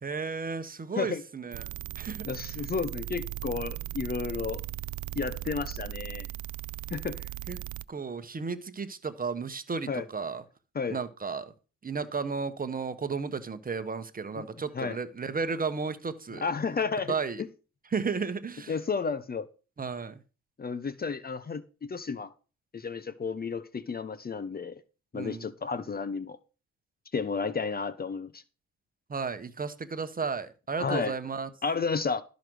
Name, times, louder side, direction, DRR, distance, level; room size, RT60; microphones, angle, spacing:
voice 1, 0.0-1.7 2.0-2.3 7.5-7.6 7.9-10.4 10.9-11.5 11.8-16.4 17.1-17.4 17.9-18.8 19.8-20.2 25.1-25.5 29.1-31.5, right 5 dB, 30° right, 1.2 m, -33 dB
sound 1, 1.5-7.8, right 15 dB, 70° right, 0.5 m, -38 dB
voice 2, 2.2-4.6 5.2-6.3 6.9-7.3 9.9-10.1 10.7-11.0 14.4-14.5 14.7-15.0 16.4-17.2 18.7-19.5 20.6-22.3 22.7-24.8 25.1-26.4 27.1-28.4 30.8-31.1 31.6-32.2, left 5 dB, 30° left, 0.8 m, -32 dB
12.5 x 5.1 x 6.2 m
cardioid pair, 90°, 30 cm